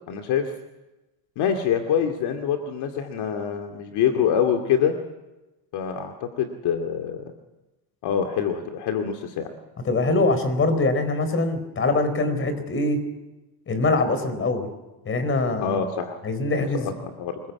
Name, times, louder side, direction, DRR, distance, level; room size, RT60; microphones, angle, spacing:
voice 1, 0.1-0.5 1.4-5.0 5.7-7.2 8.0-9.5 15.6-16.2 16.5-17.4, left 8 dB, 55° left, 4 dB, 2.5 m, -25 dB
voice 2, 9.8-13.0 13.7-14.7 15.0-15.8 16.2-16.9, left 2 dB, 25° left, 10 dB, 4.5 m, -23 dB
25.5 x 22.0 x 8.5 m, 1.0 s
cardioid pair, 155°, 47 cm